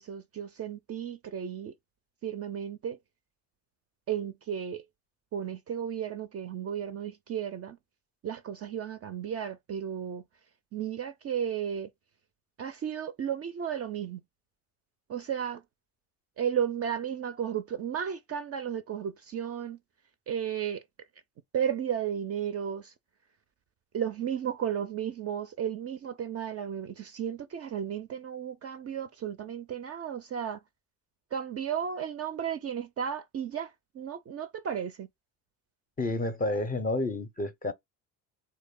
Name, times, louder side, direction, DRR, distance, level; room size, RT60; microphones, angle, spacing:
voice 1, 0.0-1.7 2.2-3.0 4.1-4.8 5.3-7.8 8.2-10.2 10.7-11.9 12.6-14.2 15.1-15.6 16.4-19.8 20.3-20.8 21.5-22.9 23.9-30.6 31.3-35.1, right 8 dB, 35° right, 0.4 m, -34 dB
voice 2, 36.0-37.7, left 2 dB, 20° left, 0.5 m, -30 dB
3.1 x 2.1 x 3.6 m
supercardioid pair, 70°, 43 cm